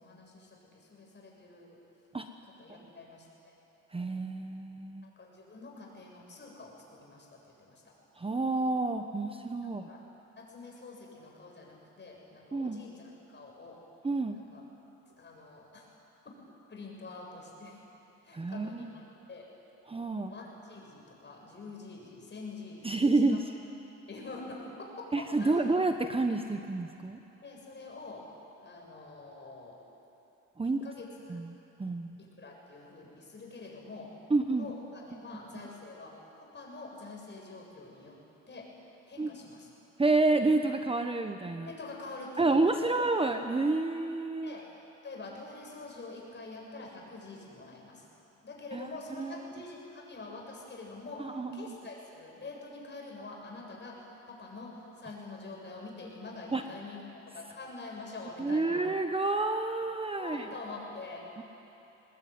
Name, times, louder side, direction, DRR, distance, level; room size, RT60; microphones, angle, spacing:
voice 1, 0.0-1.8 2.4-3.5 5.0-7.9 9.6-10.1 10.4-13.8 14.3-14.6 15.2-15.9 16.2-16.3 16.7-17.8 18.2-19.0 19.3-19.5 20.3-23.4 24.1-25.7 27.4-28.3 28.6-29.8 30.6-31.4 32.2-34.1 34.5-38.2 38.5-38.7 39.1-39.7 41.6-42.9 44.4-44.7 45.0-48.1 48.4-57.0 57.3-58.8 60.2-61.3, left 3 dB, 35° left, -1 dB, 7.3 m, -46 dB
voice 2, 3.9-5.0 8.2-9.9 12.5-12.8 14.0-14.4 18.3-18.9 19.9-20.3 22.8-23.5 25.1-27.2 30.6-30.8 31.3-31.5 31.8-32.1 34.3-34.7 39.2-39.3 40.0-41.7 42.4-44.5 48.7-48.9 49.2-49.4 51.2-51.8 56.5-56.6 58.4-60.5 61.4-61.5, right 3 dB, 20° right, 7 dB, 1.0 m, -29 dB
22.5 x 20.0 x 9.6 m, 2.9 s
cardioid pair, 90°, 30 cm